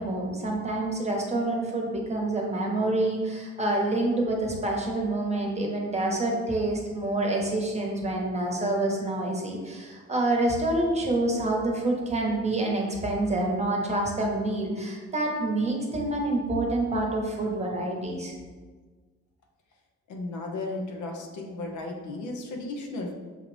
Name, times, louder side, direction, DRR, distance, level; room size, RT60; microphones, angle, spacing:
voice 1, 0.0-18.3, right 2 dB, 20° right, -1 dB, 1.0 m, -27 dB
voice 2, 20.1-23.1, left 2 dB, 75° left, 1 dB, 0.9 m, -35 dB
6.5 x 2.4 x 3.3 m, 1.4 s
cardioid pair, 90°, 30 cm